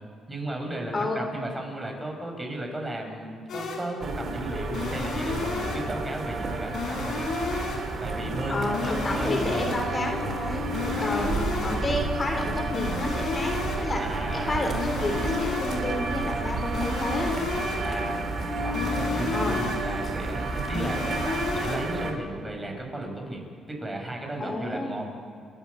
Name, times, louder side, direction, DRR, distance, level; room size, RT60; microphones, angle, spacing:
voice 1, 0.3-7.2 8.0-9.6 10.9-11.4 14.0-14.8 17.8-18.3 18.6-25.1, right 1 dB, 20° right, 2 dB, 5.7 m, -35 dB
sound 1, 3.5-4.0 4.7-6.0 6.7-8.0 8.7-10.0 10.7-12.0 12.7-14.0 14.7-16.0 16.7-18.0 18.7-20.0 20.7-22.0, left 4 dB, 70° left, 5.0 m, -32 dB
sound 2, 4.0-22.1, right 2 dB, 50° right, 3.3 m, -31 dB
voice 2, 8.5-10.6 11.0-13.5 13.8-14.0 14.3-17.3 19.3-19.6 24.4-25.0, left 2 dB, 30° left, 3 dB, 3.1 m, -30 dB
29.5 x 12.0 x 8.2 m, 2.5 s
cardioid pair, 90°, 0 cm